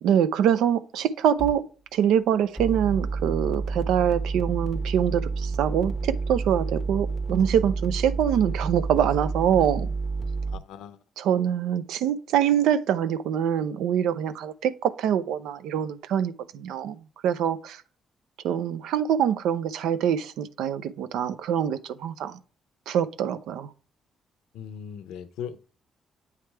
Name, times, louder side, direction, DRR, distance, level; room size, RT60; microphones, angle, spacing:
voice 1, 0.0-1.6 1.9-9.9 11.2-17.8 18.4-22.4 22.9-23.7, right 9 dB, 85° right, 0.5 m, -24 dB
sound 1, 1.4-1.5 2.6-10.6, right 4 dB, 10° right, 1.0 m, -29 dB
voice 2, 10.5-11.0 24.5-25.6, left 8 dB, 90° left, 0.5 m, -38 dB
8.3 x 3.3 x 4.4 m
cardioid pair, 90°, 0 cm